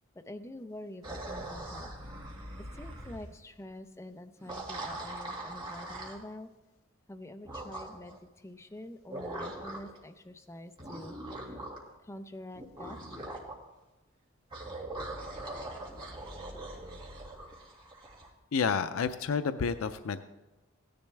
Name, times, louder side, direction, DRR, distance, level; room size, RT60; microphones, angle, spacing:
voice 1, 0.2-1.9 2.7-6.5 7.1-11.1 12.0-13.0, left 1 dB, 15° left, 7 dB, 0.6 m, -46 dB
sound 1, 1.0-3.3 4.4-6.2 7.4-8.2 9.1-10.0 10.8-11.9 12.5-13.6 14.5-18.3, right 1 dB, 25° right, 2.1 m, -41 dB
voice 2, 18.5-20.2, left 5 dB, 85° left, 10 dB, 0.5 m, -30 dB
16.0 x 10.5 x 3.4 m, 1.0 s
head